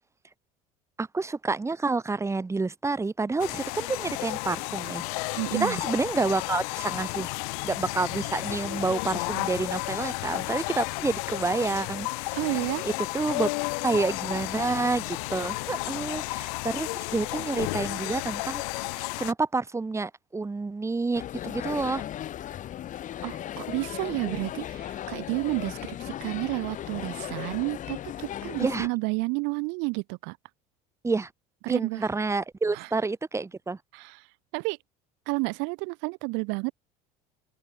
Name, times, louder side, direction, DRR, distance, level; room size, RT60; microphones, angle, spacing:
voice 1, 1.0-5.0 5.6-7.3 7.6-12.6 12.8-13.5 13.8-18.6 18.9-22.0 28.6-28.9 31.0-31.3 31.7-33.8, right 3 dB, 15° right, 1.8 m, -29 dB
sound 1, 3.4-19.3, left 36 dB, 80° left, 1.6 m, -32 dB
voice 2, 5.4-5.8 12.3-12.8 23.2-30.4 31.6-32.1 32.7-32.9 33.9-34.3 34.5-34.8 35.3-36.7, right 32 dB, 75° right, 1.0 m, -31 dB
sound 2, 21.1-28.9, left 11 dB, 45° left, 1.2 m, -37 dB
open air
supercardioid pair, 110°, 19 cm